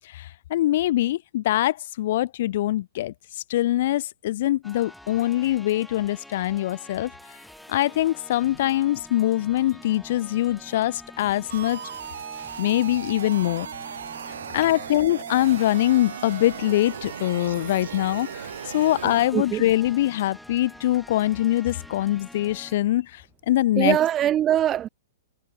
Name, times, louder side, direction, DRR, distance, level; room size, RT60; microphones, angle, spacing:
voice 1, 0.1-3.1 3.5-7.1 7.7-11.8 12.6-13.7 14.5-18.4 18.7-23.1 23.5-24.0, left 14 dB, 55° left, 0.4 m, -23 dB
sound 1, 4.6-22.8, left 1 dB, ahead, 3.2 m, -47 dB
sound 2, 11.5-19.3, right 7 dB, 70° right, 1.5 m, -37 dB
voice 2, 19.0-19.6 23.8-24.9, right 11 dB, 25° right, 0.9 m, -23 dB
hypercardioid pair, 115°, 0 cm